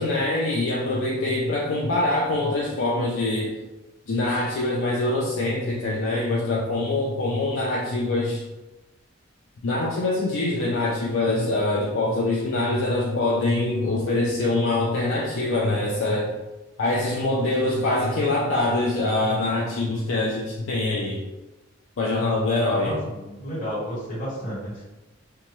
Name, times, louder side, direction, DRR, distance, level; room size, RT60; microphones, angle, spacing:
voice 1, 0.0-3.5 4.1-8.4 9.6-16.3 16.8-21.2 22.0-22.9, left 2 dB, 75° left, -3 dB, 0.4 m, -24 dB
voice 2, 22.8-24.8, equal, 40° left, -8 dB, 1.2 m, -32 dB
2.8 x 2.2 x 3.0 m, 1.1 s
head